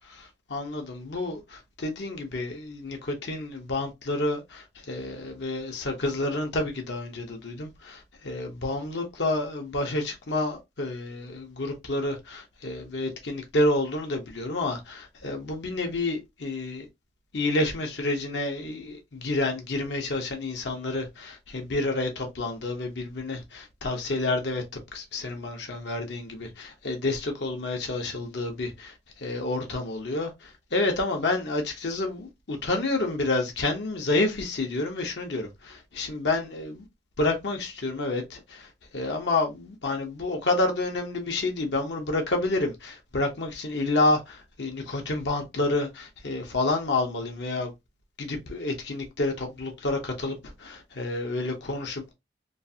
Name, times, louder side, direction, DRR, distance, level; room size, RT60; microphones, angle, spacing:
voice 1, 0.1-16.9 17.3-24.6 24.9-36.8 37.2-47.7 48.2-52.1, left 2 dB, 75° left, 0.8 m, -29 dB
3.1 x 2.4 x 2.7 m
head